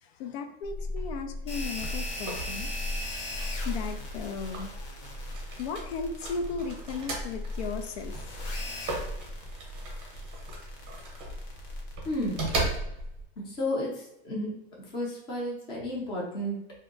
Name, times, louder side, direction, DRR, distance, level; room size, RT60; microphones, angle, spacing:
voice 1, 0.0-2.7 3.2-4.9 5.6-8.4 8.7-8.8, left 5 dB, 75° left, 6 dB, 0.5 m, -36 dB
sound 1, 0.6-13.2, right 1 dB, 20° right, 0.8 m, -36 dB
sound 2, 1.5-12.8, left 1 dB, 55° left, 0.9 m, -41 dB
voice 2, 12.0-12.4 13.4-14.5 14.9-16.8, left 1 dB, 15° left, -4 dB, 0.6 m, -32 dB
2.6 x 2.1 x 3.8 m, 0.79 s
supercardioid pair, 175°, 31 cm